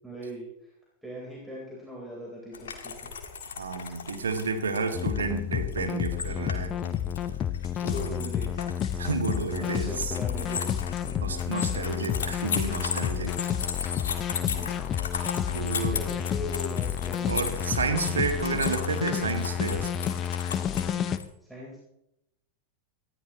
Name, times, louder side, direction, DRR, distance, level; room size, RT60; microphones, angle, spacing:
voice 1, 0.0-0.7 1.0-3.1 6.2-6.6 7.8-8.7 9.3-10.7 11.0-11.4 11.7-11.8 14.3-14.8 15.9-17.4 21.5-21.8, equal, 5° right, -4 dB, 3.7 m, -40 dB
sound 1, 2.5-21.2, left 6 dB, 65° left, 1.8 m, -37 dB
voice 2, 3.6-6.7 7.8-8.1 9.0-10.1 11.2-13.3 15.5-16.0 17.2-19.9, right 4 dB, 70° right, 6 dB, 1.8 m, -31 dB
sound 2, 4.9-21.2, left 9 dB, 30° left, 0.7 m, -30 dB
19.0 x 14.0 x 3.0 m, 0.82 s
figure-of-eight pair, 90°, 0 cm